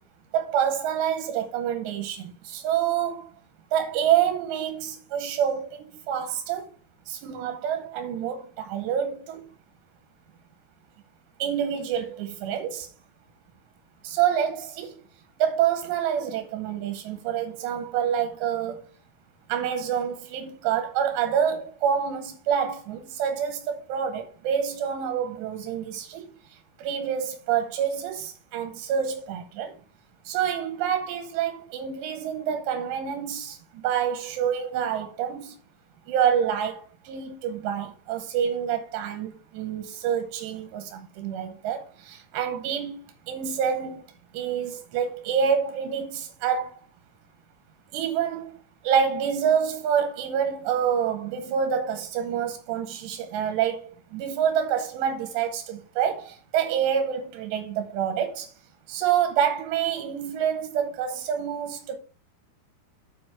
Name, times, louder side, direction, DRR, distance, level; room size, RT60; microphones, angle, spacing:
voice 1, 0.3-3.3 3.7-6.7 7.1-9.4 11.4-12.9 14.0-14.9 15.4-18.8 19.5-29.8 30.2-35.6 36.1-43.0 43.3-44.0 44.3-46.7 47.9-48.6 48.8-58.5 58.9-62.0, right 8 dB, 90° right, 3.1 m, -27 dB
7.9 x 5.1 x 4.6 m
omnidirectional pair, 4.9 m